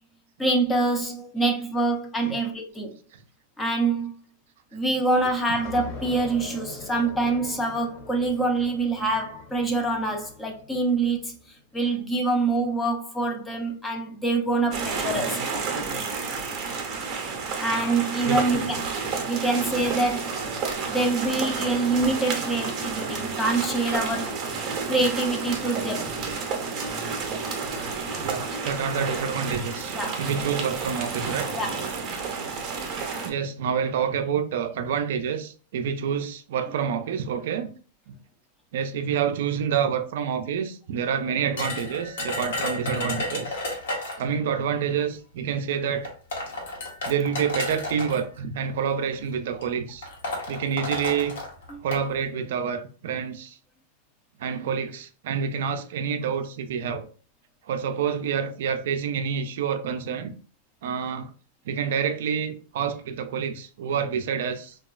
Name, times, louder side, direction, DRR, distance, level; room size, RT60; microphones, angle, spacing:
voice 1, 0.4-2.9 3.6-4.1 4.7-11.3 11.7-15.5 17.6-20.4 20.9-24.4 24.9-26.1 29.9-30.2 31.6-31.7 51.7-51.8, right 2 dB, 10° left, 0.5 m, -25 dB
sound 1, 5.1-11.5, left 4 dB, 25° left, 0.9 m, -43 dB
sound 2, 14.7-33.3, right 4 dB, 35° right, 0.6 m, -30 dB
voice 2, 28.2-31.5 33.2-37.7 38.1-38.2 38.7-43.6 44.2-46.1 47.0-50.1 50.5-51.4 51.8-53.6 54.4-57.1 57.6-60.3 60.8-61.3 61.6-64.8, right 7 dB, 70° right, 0.3 m, -28 dB
sound 3, 41.6-44.3 45.4-45.5 46.0-48.2 49.1-49.3 49.6-49.7 50.0-52.0, left 2 dB, 85° left, 1.0 m, -32 dB
2.9 x 2.3 x 2.3 m
supercardioid pair, 145°, 0 cm